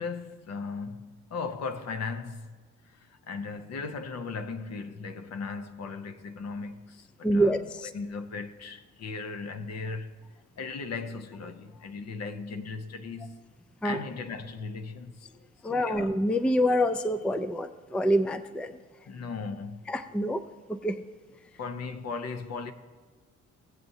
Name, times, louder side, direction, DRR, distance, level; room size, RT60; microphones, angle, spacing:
voice 1, 0.0-2.5 2.9-7.6 7.8-10.3 10.6-13.4 13.8-16.1 19.1-19.9 21.6-22.7, left 4 dB, 60° left, 0.8 m, -37 dB
voice 2, 7.2-7.9 13.8-14.0 15.6-18.8 19.9-20.4 20.7-20.9, equal, 5° left, 0.3 m, -26 dB
16.5 x 7.7 x 2.7 m
cardioid pair, 90°, 30 cm